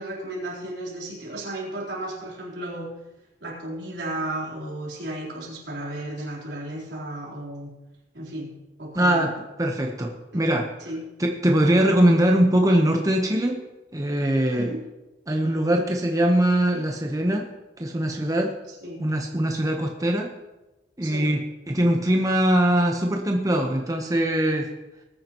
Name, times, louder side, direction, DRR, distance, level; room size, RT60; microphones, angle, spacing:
voice 1, 0.0-2.9 3.4-7.8 8.1-9.3 10.8-11.0 14.5-14.8 18.7-19.0 21.0-21.3, right 1 dB, 80° right, -4 dB, 4.0 m, -34 dB
voice 2, 8.9-9.3 9.6-10.7 11.2-13.6 13.9-14.7 15.3-17.5 17.8-18.5 19.0-20.3 21.0-21.4 21.7-24.7, right 1 dB, 20° right, 1 dB, 1.1 m, -22 dB
20.0 x 9.5 x 3.1 m, 1.0 s
head